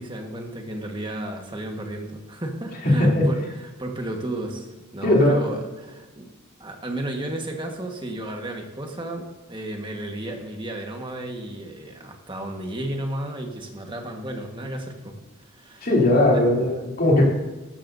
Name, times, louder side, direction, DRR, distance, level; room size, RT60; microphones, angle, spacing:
voice 1, 0.0-6.3 6.6-15.2 15.5-15.9 16.3-16.4, right 1 dB, 25° right, 2 dB, 1.5 m, -33 dB
voice 2, 2.8-3.3 5.0-5.4 15.8-17.2, left 1 dB, 45° left, -3 dB, 3.1 m, -18 dB
13.5 x 12.5 x 2.7 m, 1.2 s
head